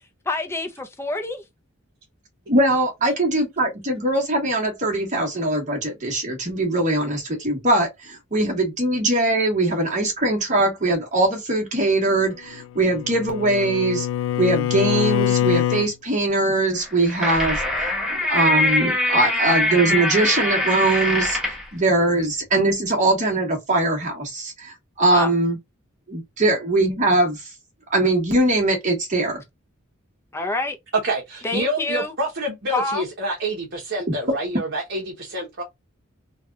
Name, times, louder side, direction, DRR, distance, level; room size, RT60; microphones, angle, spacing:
voice 1, 0.2-1.4 25.1-25.3 30.3-30.8 31.4-32.1 32.7-33.0, left 2 dB, 10° left, 0.6 m, -26 dB
voice 2, 2.5-14.1 14.4-17.9 18.3-25.6 26.1-27.4 27.9-29.4 34.1-34.2, right 2 dB, 35° right, 1.2 m, -21 dB
Bowed string instrument, 12.5-15.9, left 11 dB, 70° left, 0.3 m, -24 dB
sound 1, 16.8-21.7, left 1 dB, 5° right, 0.9 m, -22 dB
voice 3, 31.0-35.6, right 1 dB, 55° right, 1.0 m, -28 dB
3.3 x 2.3 x 2.4 m
head